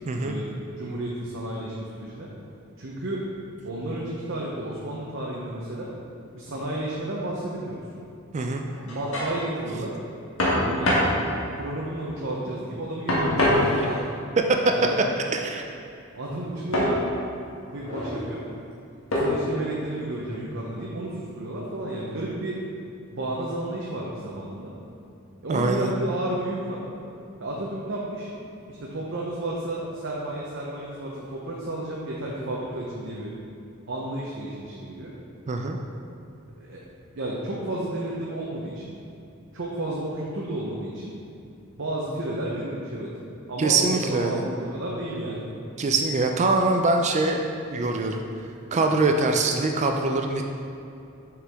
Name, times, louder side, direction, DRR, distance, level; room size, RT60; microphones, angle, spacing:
voice 1, 0.2-2.3 2.8-3.2 3.6-5.9 6.3-7.8 8.8-9.9 10.6-10.9 11.5-14.0 14.7-15.0 16.1-17.0 17.6-18.4 19.1-22.6 23.1-24.7 25.4-26.8 27.4-28.3 28.7-33.3 33.9-35.1 36.6-36.8 37.1-39.0 39.5-41.1 41.8-43.1 43.5-45.5, right 1 dB, 60° right, -4 dB, 0.7 m, -32 dB
voice 2, 8.3-8.6 14.5-14.6 15.3-15.6 25.5-25.9 35.5-35.8 43.6-44.4 45.8-47.4 47.7-48.3 48.7-50.4, right 3 dB, 35° right, 3 dB, 0.4 m, -23 dB
sound 1, 8.7-9.3 10.4-11.2 13.1-14.1 16.7-17.0 17.7-18.2 19.1-19.5, left 1 dB, 85° left, 1.4 m, -23 dB
6.7 x 4.7 x 3.5 m, 2.7 s
head